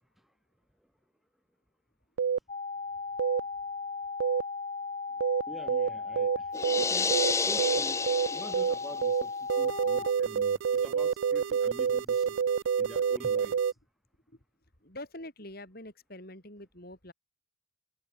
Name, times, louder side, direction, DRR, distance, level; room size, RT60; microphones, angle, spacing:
sound 1, 2.2-2.4 3.2-3.4 4.2-4.4 5.2-5.4 5.7-5.9 6.2-6.4 6.6-6.8 7.1-7.3 7.6-7.8 8.1-8.3 8.5-8.7 9.0-9.2 9.5-13.7, right 7 dB, 70° right, 0.4 m, -27 dB
sound 2, 2.5-10.1, left 4 dB, 30° left, 0.9 m, -37 dB
voice 1, 5.5-8.0 8.3-12.4 12.8-13.8, equal, ahead, 2.2 m, -46 dB
sound 3, 6.5-9.1, left 4 dB, 15° left, 0.5 m, -30 dB
voice 2, 14.8-17.1, left 1 dB, 50° left, 7.7 m, -45 dB
head